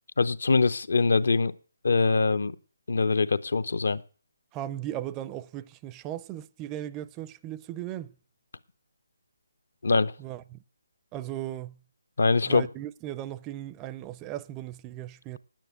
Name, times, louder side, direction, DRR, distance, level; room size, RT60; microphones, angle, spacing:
voice 1, 0.2-1.5 1.8-2.5 2.9-4.0 9.8-10.1 12.2-12.7, left 4 dB, 65° left, 0.7 m, -23 dB
voice 2, 4.5-8.1 10.2-10.6 11.1-11.8 12.4-15.4, right 12 dB, 20° right, 0.5 m, -37 dB
9.8 x 9.1 x 7.9 m
figure-of-eight pair, 145°, 0 cm